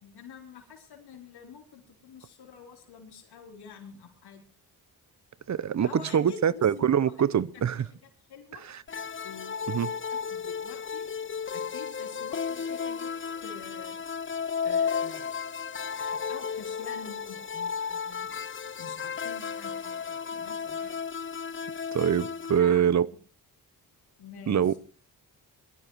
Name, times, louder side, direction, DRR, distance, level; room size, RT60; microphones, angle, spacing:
voice 1, 0.0-4.5 5.8-8.0 8.3-8.7 9.2-11.1 11.5-13.1 13.4-14.0 14.6-15.3 16.0-18.3 18.8-20.9 22.5-23.1 24.2-24.8, left 6 dB, 85° left, 3.6 m, -47 dB
voice 2, 5.5-7.9 8.7-8.8 9.7-9.9 21.9-23.1 24.5-24.8, right 8 dB, 45° right, 0.8 m, -24 dB
sound 1, 8.9-22.6, left 6 dB, 30° left, 0.8 m, -34 dB
20.0 x 12.5 x 4.6 m
cardioid pair, 75°, 38 cm